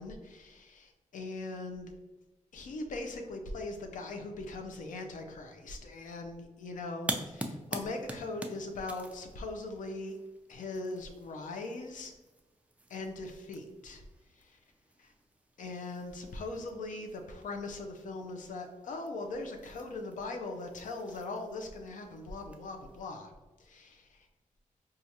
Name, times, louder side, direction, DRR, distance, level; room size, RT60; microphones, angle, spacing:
voice 1, 0.0-1.9 2.5-10.2 10.5-12.1 12.9-14.0 14.4-14.6 15.0-15.1 15.6-23.3 23.6-24.3, left 2 dB, 85° left, 4 dB, 0.5 m, -40 dB
sound 1, 7.0-23.1, right 1 dB, 10° right, 0.3 m, -46 dB
4.5 x 2.4 x 2.7 m, 1.2 s
wide cardioid pair, 135°, 13 cm